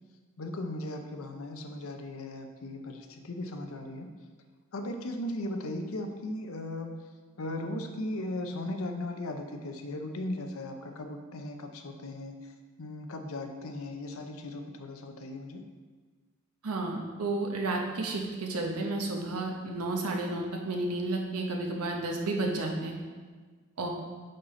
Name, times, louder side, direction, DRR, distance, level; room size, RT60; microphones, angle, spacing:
voice 1, 0.4-4.1 4.7-7.0 7.4-12.4 12.8-15.6, left 1 dB, 70° left, 5 dB, 0.7 m, -37 dB
voice 2, 16.6-23.0 23.8-23.9, right 2 dB, 85° right, 1 dB, 1.0 m, -32 dB
5.6 x 5.2 x 4.3 m, 1.4 s
head